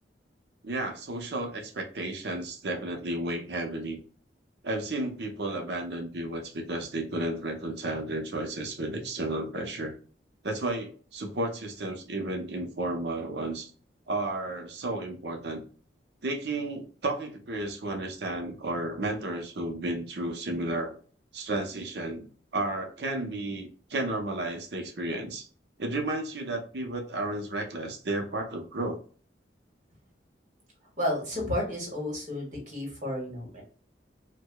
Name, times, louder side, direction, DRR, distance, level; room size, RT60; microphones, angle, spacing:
voice 1, 0.6-4.0 4.6-10.0 10.4-13.7 14.1-15.6 16.2-21.0 21.3-22.2 22.5-25.5 25.8-29.0, right 2 dB, 65° right, 3 dB, 0.7 m, -32 dB
voice 2, 31.0-33.6, left 1 dB, 40° right, -2 dB, 1.4 m, -32 dB
4.6 x 2.2 x 2.2 m, 0.42 s
head